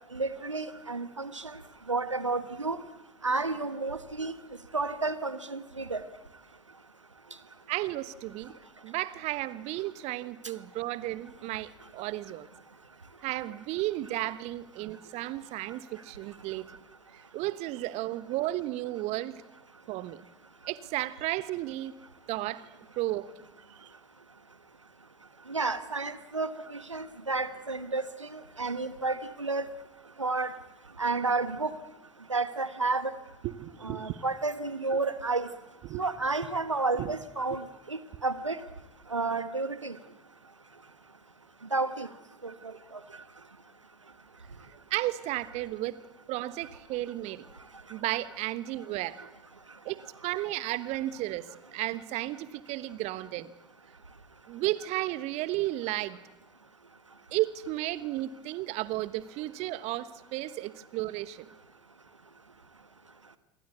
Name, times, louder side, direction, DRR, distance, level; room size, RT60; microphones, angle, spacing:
voice 1, 0.1-1.6 1.9-2.8 3.2-4.3 4.7-6.0 25.5-29.6 30.2-30.5 31.0-31.7 32.3-33.1 33.8-35.5 36.0-38.6 39.1-39.9 41.7-42.1 42.4-42.5 42.9-43.0, right 3 dB, 85° right, 13 dB, 1.3 m, -31 dB
voice 2, 7.7-8.5 8.8-12.5 13.2-16.6 17.1-19.4 19.9-20.2 20.7-21.9 22.3-22.6 23.0-23.3 23.8-23.9 33.4-34.2 35.8-36.0 37.0-37.1 44.7-46.0 46.3-47.5 47.9-49.2 49.8-53.5 54.5-56.2 57.3-61.5, right 16 dB, 45° right, 16 dB, 1.2 m, -33 dB
27.0 x 23.0 x 8.4 m, 1.0 s
figure-of-eight pair, 75°, 15 cm